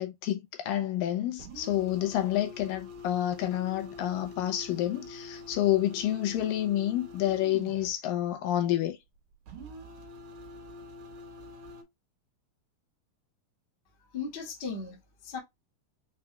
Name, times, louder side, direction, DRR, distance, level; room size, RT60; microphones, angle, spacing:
voice 1, 0.0-9.0, left 12 dB, 85° left, 2.3 m, -29 dB
sound 1, 1.4-7.9 9.5-11.8, left 1 dB, 60° right, 2.5 m, -46 dB
voice 2, 14.1-15.4, left 5 dB, 40° left, 0.9 m, -37 dB
6.0 x 2.3 x 3.1 m
omnidirectional pair, 4.1 m